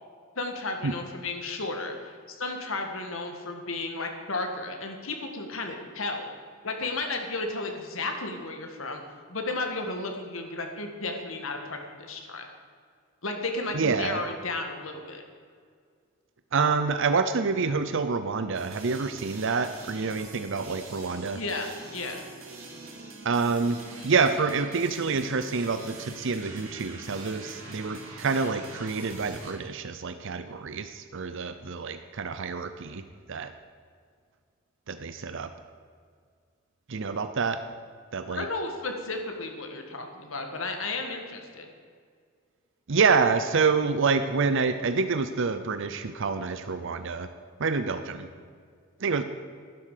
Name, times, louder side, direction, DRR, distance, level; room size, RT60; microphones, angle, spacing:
voice 1, 0.3-6.3 6.6-9.0 9.3-12.5 13.2-15.2 21.3-22.2 38.3-41.7, left 3 dB, 70° left, 4 dB, 1.8 m, -33 dB
voice 2, 13.7-14.2 16.5-21.4 23.2-23.8 24.0-33.0 33.3-33.5 34.9-35.5 36.9-37.6 38.1-38.4 42.9-47.3 47.6-48.3 49.0-49.2, right 4 dB, 65° right, 9 dB, 0.7 m, -27 dB
sound 1, 18.5-29.5, right 3 dB, 85° right, 3.9 m, -44 dB
12.0 x 11.0 x 6.8 m, 2.1 s
head